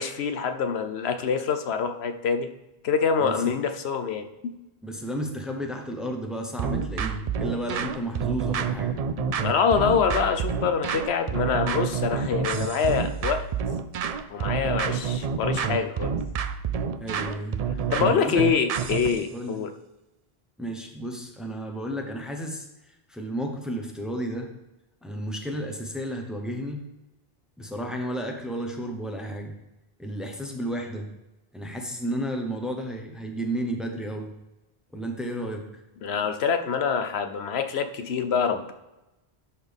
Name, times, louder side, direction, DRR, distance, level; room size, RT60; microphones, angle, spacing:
voice 1, 0.0-2.5 2.8-4.5 9.4-13.4 14.3-16.2 17.9-19.7 36.0-38.7, left 6 dB, 80° left, 8 dB, 0.9 m, -25 dB
voice 2, 3.2-3.5 4.8-9.0 17.0-18.4 19.3-19.6 20.6-24.5 25.0-26.8 27.6-29.5 30.0-31.1 31.5-34.3 34.9-35.7, right 1 dB, ahead, 2 dB, 0.9 m, -32 dB
sound 1, 6.6-19.2, right 7 dB, 55° right, 0.4 m, -28 dB
11.5 x 4.2 x 3.5 m, 0.97 s
omnidirectional pair, 1.1 m